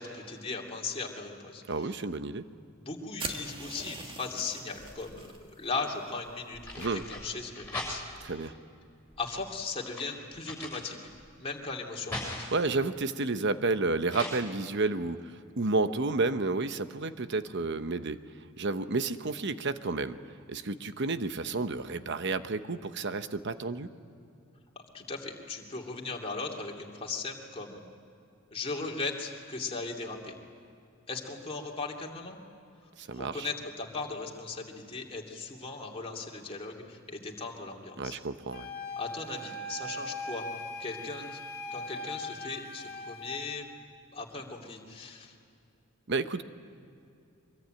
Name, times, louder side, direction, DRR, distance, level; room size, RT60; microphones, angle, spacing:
voice 1, 0.0-1.9 2.8-8.4 9.2-11.0 11.4-12.3 24.8-27.8 28.5-30.4 31.1-32.4 33.1-38.2 39.0-40.4 40.8-41.4 41.7-43.7 44.1-45.3, left 4 dB, 25° left, -1 dB, 2.7 m, -38 dB
voice 2, 1.7-2.4 6.8-7.0 8.2-8.5 12.5-18.2 18.6-20.2 20.5-23.9 33.0-33.5 38.0-38.7 46.1-46.4, right 3 dB, 55° right, 10 dB, 1.0 m, -31 dB
sound 1, 3.2-5.4, right 3 dB, 25° right, 1.9 m, -41 dB
sound 2, 4.6-5.4 6.2-8.4 9.1-11.3 11.7-12.7 14.1-14.3, left 1 dB, 10° left, 6.5 m, -40 dB
Wind instrument woodwind instrument, 38.5-43.5, left 2 dB, 45° left, 2.6 m, -40 dB
24.0 x 23.0 x 9.1 m, 2.6 s
head